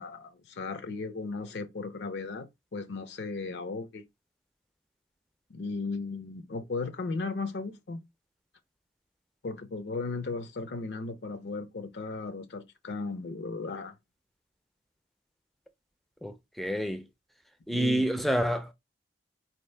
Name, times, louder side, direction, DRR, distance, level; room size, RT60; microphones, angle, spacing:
voice 1, 0.0-2.5 2.7-4.0 5.5-8.0 9.4-13.9 17.7-18.1, left 3 dB, 70° left, 0.5 m, -36 dB
voice 2, 16.2-17.1 17.7-18.7, right 1 dB, ahead, 0.4 m, -28 dB
3.8 x 2.7 x 3.3 m
head